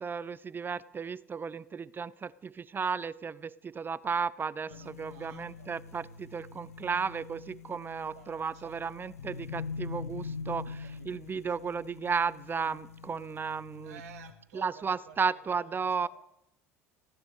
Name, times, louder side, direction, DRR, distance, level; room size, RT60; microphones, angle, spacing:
voice 1, 0.0-14.0 14.5-16.1, right 5 dB, 25° right, 21 dB, 0.5 m, -34 dB
sound 1, 4.7-14.3, left 5 dB, 80° left, 1.0 m, -43 dB
voice 2, 4.7-5.7 6.8-6.9 8.1-9.0 10.6-11.5 13.8-16.1, right 8 dB, 75° right, 8 dB, 1.3 m, -54 dB
16.5 x 10.5 x 8.2 m, 0.86 s
hypercardioid pair, 70°, 8 cm